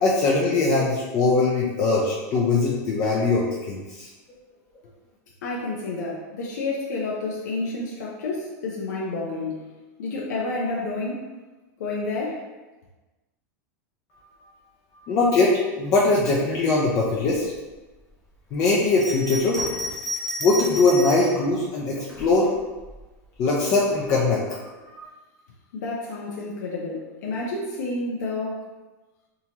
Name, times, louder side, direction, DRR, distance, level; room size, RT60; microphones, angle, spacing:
voice 1, 0.0-4.1 14.1-14.2 14.9-17.4 18.5-19.9 20.4-22.5 23.4-24.7 24.9-25.1, left 3 dB, 40° left, -5 dB, 0.6 m, -21 dB
voice 2, 5.4-9.7 10.0-11.2 11.8-12.4 25.7-28.6, left 2 dB, 90° left, -4 dB, 0.7 m, -30 dB
Bell, 18.9-21.4 22.1-23.0, left 1 dB, ahead, 0.8 m, -32 dB
3.7 x 2.9 x 2.8 m, 1.2 s
supercardioid pair, 140°, 9 cm